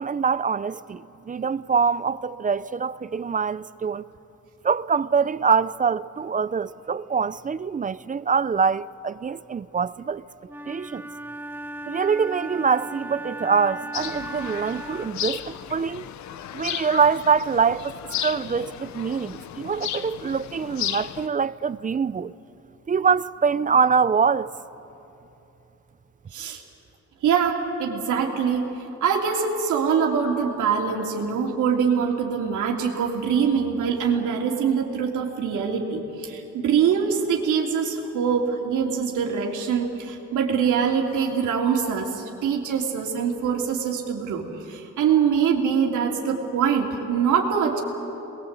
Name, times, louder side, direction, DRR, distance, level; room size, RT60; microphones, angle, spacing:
voice 1, 0.0-4.1 4.6-10.2 10.7-11.1 11.9-16.1 16.5-17.9 18.2-22.3 22.9-24.5, right 6 dB, 25° right, 0.5 m, -24 dB
Wind instrument woodwind instrument, 10.4-15.3, right 1 dB, 5° right, 1.2 m, -36 dB
sound 1, 13.9-21.3, left 11 dB, 70° left, 0.8 m, -34 dB
voice 2, 27.2-28.7 29.0-47.8, right 7 dB, 80° right, 3.3 m, -24 dB
27.5 x 21.0 x 8.2 m
cardioid pair, 90°, 30 cm